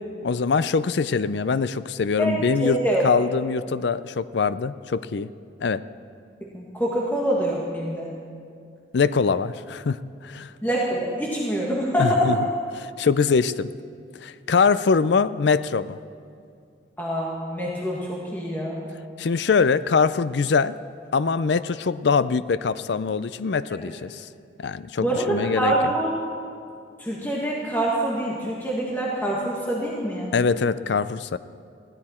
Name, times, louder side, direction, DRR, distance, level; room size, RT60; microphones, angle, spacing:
voice 1, 0.2-5.3 5.6-5.8 8.9-10.5 12.0-12.4 12.7-13.7 14.2-16.0 19.2-20.8 21.1-24.3 24.6-25.9 30.3-31.4, left 5 dB, 65° left, 15 dB, 0.5 m, -23 dB
voice 2, 2.6-3.0 6.5-8.1 10.6-12.3 17.0-18.8 23.8-23.9 25.0-26.2 27.0-30.3, right 1 dB, 10° left, -5 dB, 1.8 m, -25 dB
20.5 x 15.5 x 4.4 m, 2.3 s
head